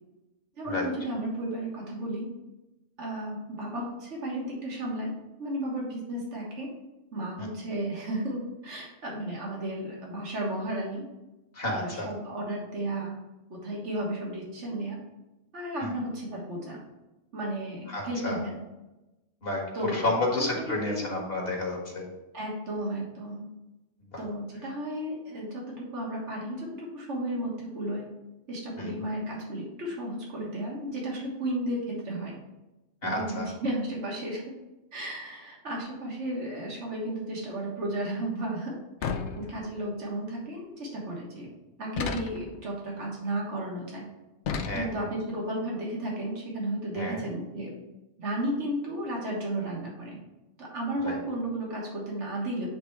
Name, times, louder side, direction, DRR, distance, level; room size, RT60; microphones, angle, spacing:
voice 1, 0.6-2.3 3.0-5.1 5.4-6.7 7.1-11.1 11.7-13.1 13.6-15.0 15.5-16.8 17.3-18.6 19.7-20.1 20.4-21.1 22.3-23.5 24.2-25.6 25.9-28.1 28.5-32.4 33.0-34.4 34.9-38.8 39.0-41.5 41.8-44.1 44.7-47.7 48.2-50.2 50.6-52.7, right 1 dB, 80° right, -3 dB, 1.9 m, -33 dB
voice 2, 11.5-12.1 15.8-15.9 17.9-18.4 19.4-22.0 24.0-24.2 28.8-28.9 33.0-33.5 44.6-44.9 46.9-47.3 51.0-51.2, left 2 dB, 55° left, 0 dB, 1.7 m, -31 dB
sound 1, 39.0-39.9 42.0-42.6 44.4-45.2, left 5 dB, 75° left, 0.9 m, -33 dB
8.2 x 3.4 x 4.6 m, 1.0 s
omnidirectional pair, 1.2 m